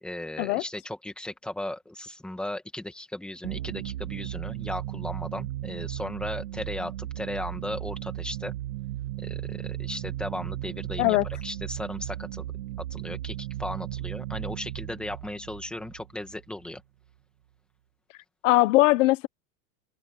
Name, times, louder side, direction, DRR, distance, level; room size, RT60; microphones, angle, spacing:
voice 1, 0.0-8.5 9.2-11.2 11.4-12.5 12.8-16.8, left 1 dB, ahead, 2.1 m, -36 dB
sound 1, 3.4-16.7, right 14 dB, 20° right, 0.3 m, -36 dB
voice 2, 18.4-19.3, left 19 dB, 50° left, 1.1 m, -20 dB
open air
supercardioid pair, 170°, 47 cm